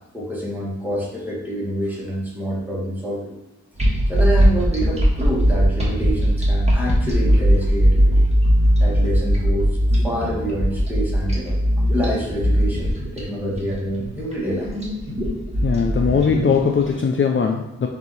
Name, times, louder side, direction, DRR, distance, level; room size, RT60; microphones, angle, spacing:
voice 1, 0.1-3.3 4.1-8.3 8.8-9.8 10.0-14.8, equal, 5° right, -5 dB, 1.4 m, -27 dB
sound 1, 3.8-16.9, equal, 20° right, 1.4 m, -19 dB
voice 2, 15.6-17.9, left 6 dB, 45° left, 2 dB, 0.4 m, -20 dB
4.7 x 2.8 x 4.0 m, 0.93 s
wide cardioid pair, 90°, 30 cm